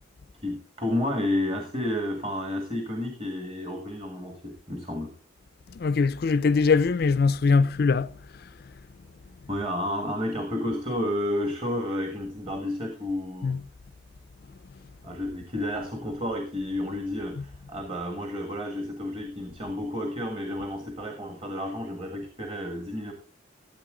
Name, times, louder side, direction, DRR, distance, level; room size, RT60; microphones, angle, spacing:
voice 1, 0.4-5.1 9.5-13.5 15.0-23.1, left 1 dB, 30° right, 1.7 m, -31 dB
voice 2, 5.8-8.1 13.4-13.6, left 4 dB, 55° left, 0.4 m, -22 dB
13.5 x 8.2 x 3.7 m
head